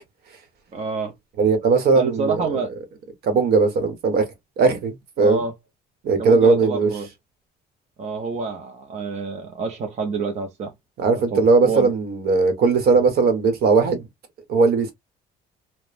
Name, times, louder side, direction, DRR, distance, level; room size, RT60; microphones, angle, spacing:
voice 1, 0.7-1.1 1.9-2.7 5.2-5.5 6.2-7.1 8.0-10.7 11.1-11.9, right 4 dB, 40° right, 0.7 m, -28 dB
voice 2, 1.4-2.6 3.2-4.3 4.6-5.4 6.0-6.9 11.0-14.0 14.5-14.9, right 4 dB, 65° right, 1.1 m, -18 dB
3.0 x 2.1 x 2.4 m
cardioid pair, 110°, 17 cm